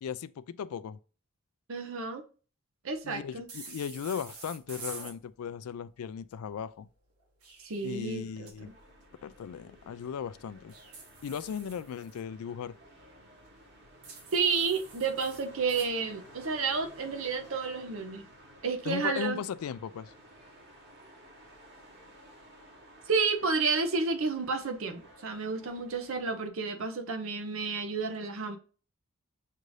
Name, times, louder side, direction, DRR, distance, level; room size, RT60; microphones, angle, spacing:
voice 1, 0.0-1.0 3.0-6.9 7.8-8.7 9.2-10.7 11.2-12.7 18.8-20.1, left 7 dB, 85° left, 0.3 m, -37 dB
voice 2, 1.7-2.2 2.8-3.5 7.6-8.5 14.3-18.2 18.6-19.4 23.1-28.6, right 4 dB, 70° right, 0.6 m, -31 dB
sound 1, 3.5-5.2 7.2-8.5 10.7-12.2 14.0-15.9, right 4 dB, 90° right, 1.3 m, -47 dB
sound 2, 8.6-26.5, right 1 dB, 50° right, 1.4 m, -55 dB
6.5 x 2.6 x 3.2 m
head